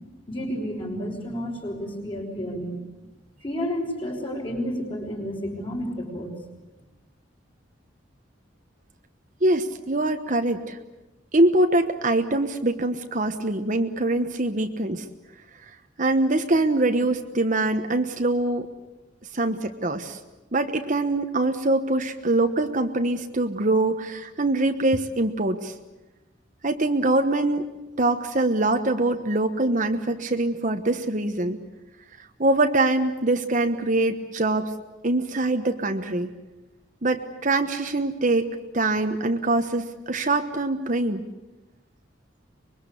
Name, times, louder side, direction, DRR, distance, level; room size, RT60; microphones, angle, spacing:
voice 1, 0.3-2.8 3.4-6.3, equal, 30° left, 1 dB, 6.0 m, -31 dB
voice 2, 9.4-10.8 11.3-15.0 16.0-18.7 19.3-20.2 20.5-25.7 26.6-27.7 28.0-31.6 32.2-34.7 35.0-36.3 37.0-38.5 38.7-41.2, right 2 dB, 40° right, 6 dB, 1.2 m, -23 dB
25.0 x 22.5 x 8.4 m, 1.1 s
head